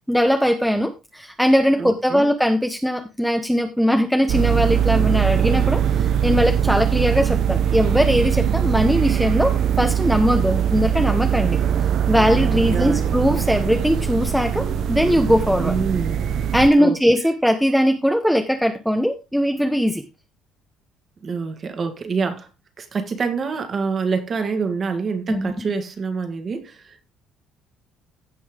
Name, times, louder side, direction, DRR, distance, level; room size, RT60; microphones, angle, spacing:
voice 1, 0.1-11.6 12.1-15.7 16.5-20.0 25.3-25.5, equal, ahead, 0.9 m, -20 dB
voice 2, 1.8-2.3 12.7-13.2 15.6-16.4 16.8-17.0 21.2-22.5 22.8-27.0, right 5 dB, 30° right, 1.7 m, -26 dB
sound 1, 4.3-16.7, right 9 dB, 50° right, 0.7 m, -21 dB
16.0 x 5.5 x 3.7 m
cardioid pair, 165°, 0 cm